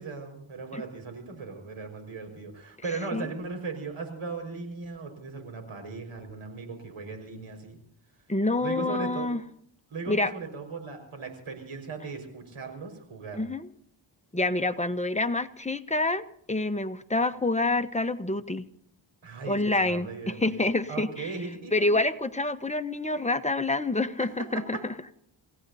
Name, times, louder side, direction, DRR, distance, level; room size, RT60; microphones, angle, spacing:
voice 1, 0.0-7.8 8.6-9.3 9.9-13.5 19.2-21.7 24.2-24.3 24.5-24.8, right 4 dB, 85° right, 5 dB, 5.4 m, -38 dB
voice 2, 8.3-9.4 10.1-10.3 13.4-13.7 14.3-18.7 19.5-21.3 21.7-24.8, left 2 dB, 15° left, 8 dB, 1.2 m, -27 dB
28.5 x 16.0 x 2.8 m, 0.67 s
cardioid pair, 60°, 48 cm